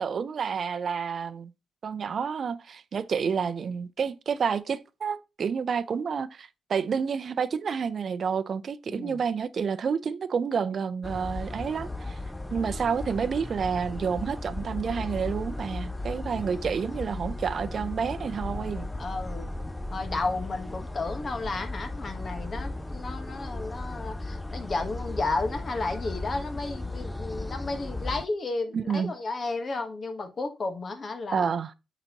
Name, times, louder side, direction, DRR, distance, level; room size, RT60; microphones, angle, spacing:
voice 1, 0.0-1.5 1.8-12.2 12.5-18.9 28.7-29.1 31.3-31.7, right 6 dB, 55° right, 0.5 m, -29 dB
voice 2, 8.9-9.2 19.0-19.5 19.9-31.5, left 3 dB, 45° left, 1.3 m, -33 dB
sound 1, 11.0-28.2, left 2 dB, 10° left, 0.4 m, -36 dB
8.7 x 4.0 x 2.9 m
cardioid pair, 75°, 0 cm